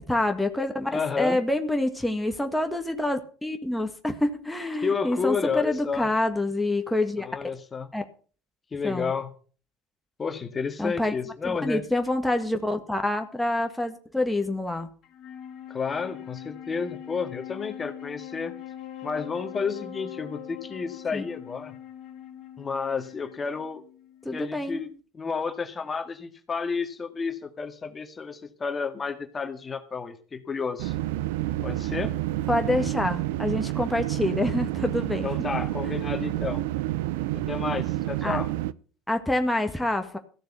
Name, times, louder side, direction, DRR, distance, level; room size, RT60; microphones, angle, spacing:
voice 1, 0.1-7.2 7.9-8.0 8.8-9.1 10.8-11.1 11.4-14.9 21.1-21.3 24.2-24.8 32.5-35.3 38.2-38.4 39.1-40.2, left 1 dB, 5° left, 4 dB, 1.7 m, -27 dB
voice 2, 0.9-1.4 4.8-6.1 7.2-7.9 8.7-9.3 10.2-11.8 15.7-18.5 19.0-21.8 22.6-23.8 24.3-24.9 25.1-30.9 31.6-32.1 35.2-36.6 37.3-38.5, left 5 dB, 30° left, 7 dB, 1.8 m, -31 dB
Wind instrument woodwind instrument, 15.0-24.5, left 11 dB, 45° left, 2.3 m, -42 dB
sound 1, 30.8-38.7, right 16 dB, 70° right, 0.5 m, -29 dB
15.0 x 6.7 x 6.9 m, 0.41 s
hypercardioid pair, 70°, 0 cm